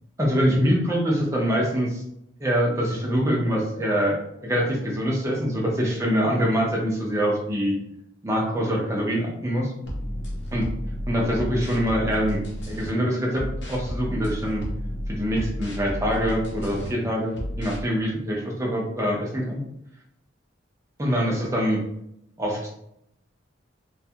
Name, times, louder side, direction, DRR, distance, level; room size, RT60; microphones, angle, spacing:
voice 1, 0.2-2.0 2.4-4.2 4.4-7.8 8.2-9.7 10.5-10.6 11.1-14.6 15.1-19.6 21.0-21.8 22.4-22.7, equal, 15° right, -3 dB, 0.5 m, -24 dB
sound 1, 9.8-12.9 13.3-16.9 17.3-17.8, equal, 65° left, 0.8 m, -32 dB
2.5 x 2.3 x 2.7 m, 0.78 s
head